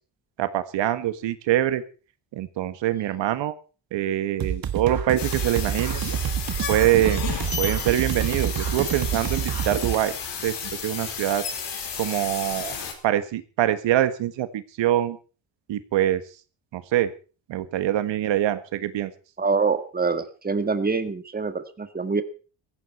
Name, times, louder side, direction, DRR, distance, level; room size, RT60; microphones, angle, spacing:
voice 1, 0.4-1.8 2.3-3.5 3.9-6.0 6.7-7.2 7.6-10.1 10.4-10.5 10.8-11.4 12.0-12.7 13.0-15.2 15.7-16.2 16.7-17.1 17.5-19.1, right 12 dB, 85° right, 12 dB, 1.6 m, -24 dB
sound 1, 4.4-10.0, right 9 dB, 55° right, 1.6 m, -28 dB
sound 2, 5.2-12.9, left 7 dB, 70° left, 5.0 m, -33 dB
voice 2, 19.4-22.2, right 4 dB, 20° right, 9 dB, 1.8 m, -25 dB
16.5 x 15.0 x 4.4 m, 0.36 s
cardioid pair, 120°, 43 cm